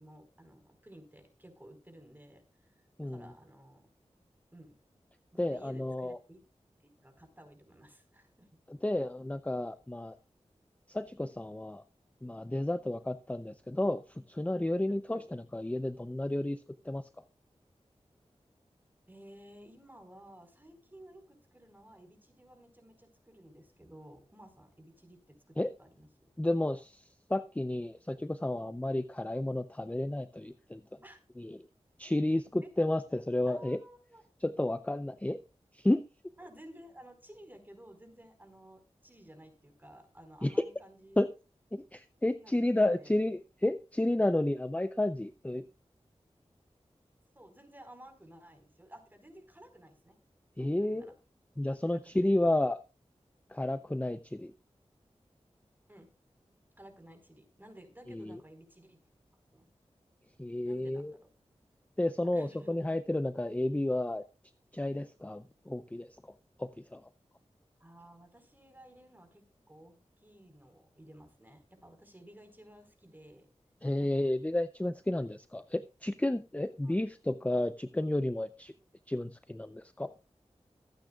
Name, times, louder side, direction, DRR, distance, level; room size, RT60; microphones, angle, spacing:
voice 1, 0.0-3.9 4.5-4.7 5.3-6.4 6.8-8.5 14.9-15.2 19.1-26.3 31.0-31.2 32.6-32.7 33.5-34.2 36.4-41.2 42.4-42.6 42.9-43.2 47.3-50.2 50.7-51.1 51.9-52.4 55.9-56.1 56.8-59.0 59.5-59.7 60.6-61.3 62.3-62.9 67.8-73.5 74.0-74.3 74.8-75.2 76.8-77.2, right 1 dB, 15° right, 6 dB, 4.6 m, -55 dB
voice 2, 5.4-6.2 8.7-10.2 10.9-11.8 12.2-17.1 25.6-25.7 26.4-27.0 27.3-30.8 31.4-31.6 32.0-33.8 34.4-35.4 35.7-36.0 40.4-40.6 41.2-41.3 41.7-45.7 50.6-51.1 51.6-52.8 53.5-54.5 58.1-58.4 60.4-61.1 62.0-64.2 64.7-66.1 66.6-67.1 73.8-78.7 79.1-80.1, left 1 dB, 10° left, 11 dB, 0.6 m, -31 dB
23.5 x 9.2 x 2.4 m, 0.30 s
wide cardioid pair, 60°, 12 cm